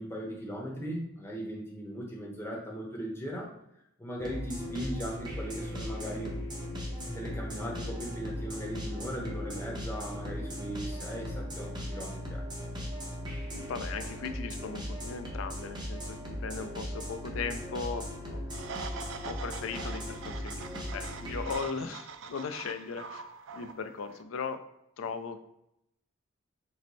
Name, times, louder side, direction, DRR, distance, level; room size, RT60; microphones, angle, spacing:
voice 1, 0.0-3.5 4.0-6.3 7.1-12.4, equal, 10° left, -2 dB, 0.8 m, -38 dB
sound 1, 4.2-21.5, equal, 20° right, 0.8 m, -38 dB
voice 2, 13.4-18.6 19.2-23.3 23.5-24.6 25.0-25.4, left 5 dB, 80° left, 8 dB, 0.4 m, -38 dB
sound 2, 18.5-24.2, right 5 dB, 65° right, 0.3 m, -44 dB
4.6 x 2.1 x 4.0 m, 0.80 s
head